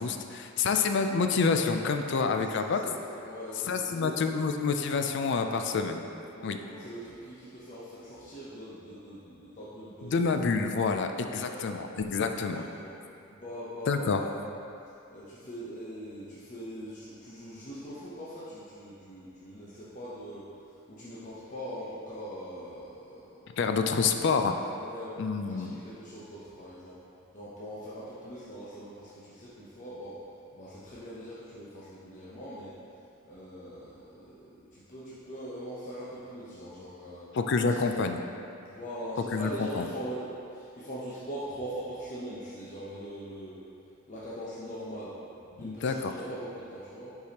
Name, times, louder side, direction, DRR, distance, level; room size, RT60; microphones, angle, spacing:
voice 1, 0.0-2.8 3.7-6.1 6.4-6.6 10.0-12.6 13.9-14.2 23.6-24.5 25.2-25.7 37.3-38.2 39.3-39.9 45.6-46.1, left 4 dB, 60° left, 6 dB, 0.4 m, -28 dB
voice 2, 2.5-4.2 6.3-10.3 11.2-11.7 12.2-12.9 13.3-14.3 15.1-20.5 20.9-23.6 23.9-24.3 24.8-27.0 27.3-30.2 30.5-32.8 33.2-37.3 37.6-37.9 38.7-43.6 44.1-47.1, equal, 40° left, -9 dB, 0.9 m, -42 dB
8.3 x 4.7 x 2.9 m, 2.6 s
head